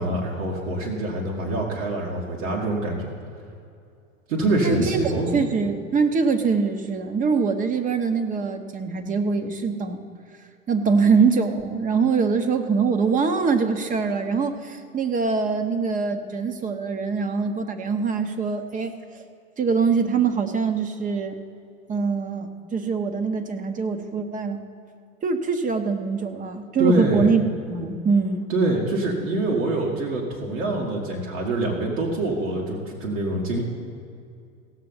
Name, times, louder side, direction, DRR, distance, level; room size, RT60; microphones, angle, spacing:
voice 1, 0.0-3.1 4.3-5.3 26.8-27.3 28.5-33.6, right 2 dB, 65° right, -3 dB, 2.2 m, -25 dB
voice 2, 4.6-5.0 5.3-10.0 10.7-18.9 19.6-21.4 21.9-24.6 25.2-28.5, right 5 dB, 20° right, 8 dB, 0.9 m, -23 dB
17.0 x 6.7 x 5.6 m, 2.5 s
hypercardioid pair, 100°, 41 cm